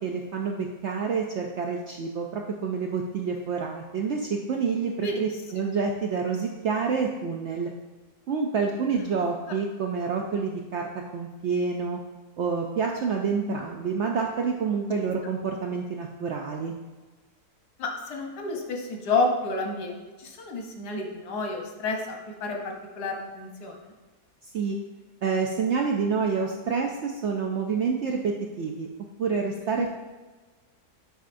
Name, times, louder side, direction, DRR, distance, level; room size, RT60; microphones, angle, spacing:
voice 1, 0.0-7.7 8.3-10.8 11.1-12.0 12.4-16.7 24.5-24.8 25.2-28.9 29.2-29.9, right 5 dB, 70° right, 1 dB, 0.6 m, -28 dB
voice 2, 17.8-23.8 29.6-29.7, left 3 dB, 85° left, 2 dB, 1.5 m, -30 dB
7.9 x 5.0 x 2.5 m, 1.3 s
omnidirectional pair, 1.7 m